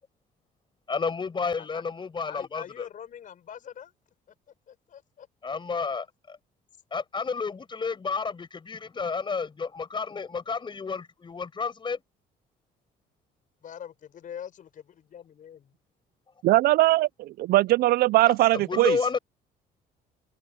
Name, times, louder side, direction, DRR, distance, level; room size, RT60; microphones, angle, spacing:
voice 1, 0.9-2.9 5.4-6.4 6.9-12.0 18.5-19.2, left 5 dB, 30° left, 5.6 m, -31 dB
voice 2, 2.3-3.9 4.3-4.4 4.7-5.3 13.6-15.7 18.5-18.6, left 9 dB, 50° left, 5.6 m, -43 dB
voice 3, 16.4-19.0, right 17 dB, 65° right, 0.4 m, -21 dB
open air
cardioid pair, 110°, 17 cm